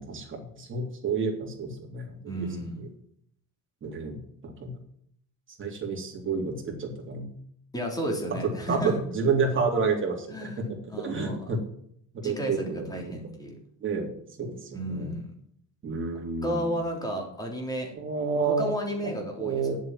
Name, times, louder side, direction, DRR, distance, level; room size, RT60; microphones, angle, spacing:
voice 1, 0.0-2.5 2.8-2.9 3.8-4.2 4.4-4.7 5.6-7.3 8.4-10.6 10.9-11.6 12.1-13.2 13.8-14.1 14.4-15.2 15.8-16.7 18.0-18.7 19.4-19.8, right 4 dB, 25° right, 0 dB, 3.3 m, -30 dB
voice 2, 2.3-2.8 7.7-9.0 10.3-11.4 12.2-13.5 14.7-15.3 16.4-17.9 18.4-19.7, right 1 dB, 10° left, 1 dB, 3.4 m, -32 dB
10.5 x 7.6 x 7.6 m, 0.67 s
cardioid pair, 145°, 45 cm